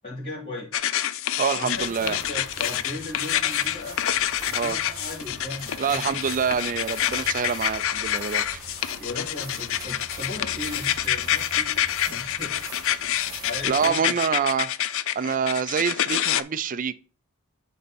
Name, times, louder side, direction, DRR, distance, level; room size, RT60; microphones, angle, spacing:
voice 1, 0.0-0.9 1.5-4.0 4.6-6.4 9.0-11.8 12.1-12.6 13.4-14.1, left 2 dB, 35° left, 3.3 m, -37 dB
sound 1, 0.7-16.4, left 11 dB, 65° left, 0.5 m, -27 dB
voice 2, 1.4-2.2 4.5-4.8 5.8-8.6 13.6-16.9, right 6 dB, 40° right, 0.4 m, -26 dB
sound 2, 1.7-13.9, right 3 dB, 20° right, 1.8 m, -43 dB
10.5 x 4.2 x 4.2 m
head